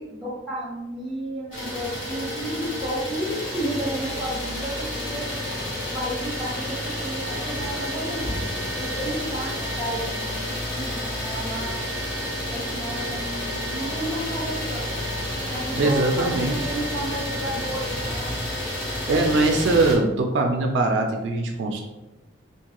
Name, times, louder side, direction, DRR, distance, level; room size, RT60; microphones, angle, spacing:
voice 1, 0.0-5.3 5.9-8.3 8.8-10.3 10.6-11.8 12.5-15.0 15.5-18.3, right 1 dB, ahead, -7 dB, 0.8 m, -32 dB
Idling, 1.5-20.0, left 1 dB, 85° left, 1.2 m, -30 dB
voice 2, 15.8-16.6 19.1-21.8, right 2 dB, 65° right, 3 dB, 0.3 m, -21 dB
2.7 x 2.2 x 2.9 m, 1.0 s
head